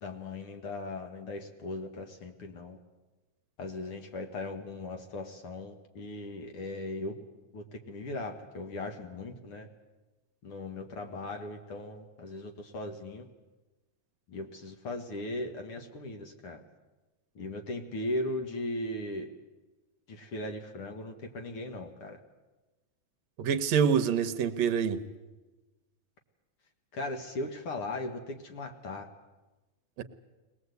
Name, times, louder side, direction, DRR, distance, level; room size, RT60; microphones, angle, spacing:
voice 1, 0.0-2.8 3.6-7.2 7.5-9.7 10.4-13.3 14.3-16.6 17.4-19.3 20.1-22.2 26.9-29.1, left 2 dB, 55° left, 5 dB, 2.1 m, -38 dB
voice 2, 23.4-25.0 30.0-30.1, right 7 dB, 70° right, 9 dB, 2.1 m, -26 dB
21.5 x 20.0 x 8.1 m, 1.2 s
omnidirectional pair, 3.4 m